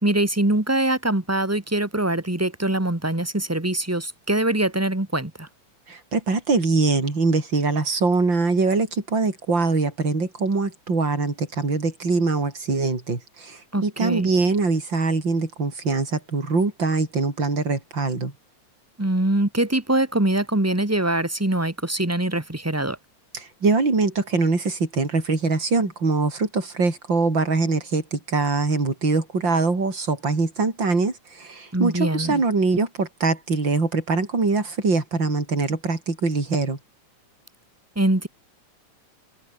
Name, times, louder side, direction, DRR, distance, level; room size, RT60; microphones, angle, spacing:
voice 1, 0.0-5.5 13.7-14.3 19.0-23.0 31.7-32.4 37.9-38.3, right 1 dB, 10° right, 1.1 m, -23 dB
voice 2, 5.9-18.3 23.3-36.8, right 3 dB, 35° right, 5.8 m, -23 dB
omnidirectional pair, 3.4 m